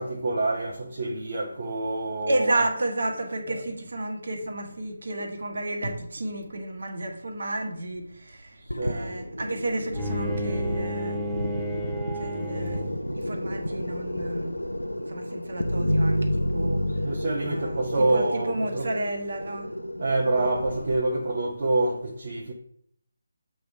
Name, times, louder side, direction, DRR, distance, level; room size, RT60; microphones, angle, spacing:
voice 1, 0.0-2.7 3.4-3.6 8.8-9.1 17.0-18.9 20.0-22.5, right 2 dB, 40° right, 0.8 m, -27 dB
voice 2, 2.3-8.5 8.8-11.2 12.2-12.8 13.1-14.6 15.1-16.8 17.4-19.8, right 2 dB, 55° right, 1.2 m, -31 dB
sound 1, 8.7-21.0, equal, 85° left, 0.6 m, -30 dB
Bowed string instrument, 9.9-13.2, equal, 5° left, 0.6 m, -33 dB
7.6 x 3.5 x 4.6 m
figure-of-eight pair, 155°, 0 cm